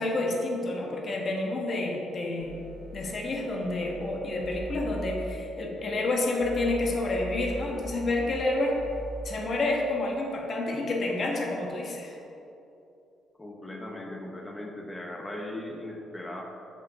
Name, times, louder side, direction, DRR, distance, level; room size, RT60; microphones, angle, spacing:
voice 1, 0.0-2.5 2.9-8.8 9.2-12.1, left 2 dB, 45° left, 0 dB, 1.2 m, -29 dB
sound 1, 2.4-3.1 3.4-5.4 6.4-8.5 8.7-9.3, right 1 dB, 25° right, 1.1 m, -40 dB
voice 2, 13.4-16.4, left 1 dB, 15° left, 0 dB, 1.0 m, -38 dB
6.1 x 5.6 x 5.4 m, 2.8 s
cardioid pair, 90°, 0 cm